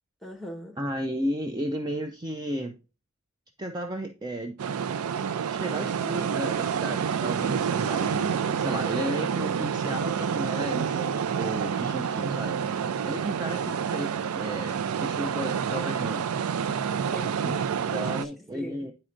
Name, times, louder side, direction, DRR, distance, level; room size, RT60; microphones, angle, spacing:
voice 1, 0.2-0.8 17.1-18.9, equal, ahead, 1.2 m, -41 dB
voice 2, 0.8-2.8 3.6-4.6 5.5-12.6 13.0-16.4 17.4-17.5 17.9-18.9, right 1 dB, 20° right, 0.5 m, -34 dB
sound 1, 4.6-18.2, right 7 dB, 85° right, 0.4 m, -28 dB
10.0 x 4.3 x 2.5 m
head